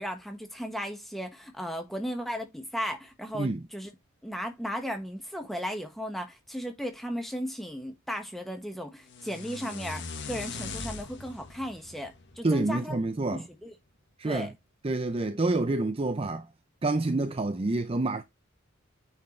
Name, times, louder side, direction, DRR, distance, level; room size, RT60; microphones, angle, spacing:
voice 1, 0.0-3.9 4.2-13.0 13.3-13.7 14.2-14.5, equal, ahead, 1.5 m, -36 dB
sound 1, 9.1-13.2, left 4 dB, 55° left, 1.5 m, -41 dB
voice 2, 12.4-13.4 14.2-14.5 14.8-16.5 16.8-18.2, right 2 dB, 30° right, 0.5 m, -28 dB
9.3 x 4.4 x 3.2 m
head